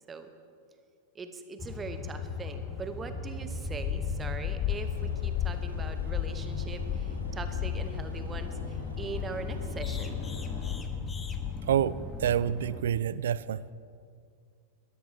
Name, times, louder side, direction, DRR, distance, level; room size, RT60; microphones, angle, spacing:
voice 1, 1.1-10.2, right 4 dB, 20° right, 8 dB, 1.2 m, -41 dB
sound 1, 1.6-12.8, left 2 dB, 15° left, 1.2 m, -38 dB
sound 2, 3.4-11.8, left 14 dB, 35° left, 0.3 m, -35 dB
Aircraft, 4.7-10.7, equal, 85° left, 2.5 m, -47 dB
voice 2, 11.7-13.6, right 9 dB, 60° right, 18 dB, 0.4 m, -28 dB
21.0 x 13.5 x 3.4 m, 2.3 s
figure-of-eight pair, 90°, 0 cm